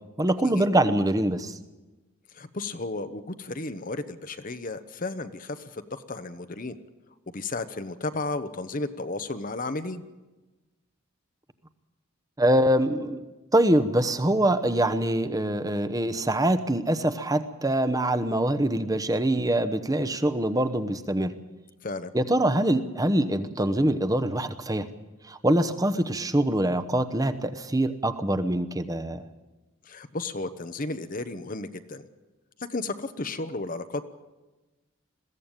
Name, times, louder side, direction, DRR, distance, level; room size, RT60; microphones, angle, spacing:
voice 1, 0.2-1.6 12.4-13.2 13.5-21.3 22.1-24.9 25.3-29.2, right 1 dB, 15° right, 10 dB, 1.0 m, -24 dB
voice 2, 2.3-6.8 7.3-10.0 21.8-22.1 29.8-32.1 32.6-34.1, left 2 dB, 40° left, 11 dB, 0.9 m, -33 dB
21.5 x 15.5 x 9.0 m, 1.2 s
head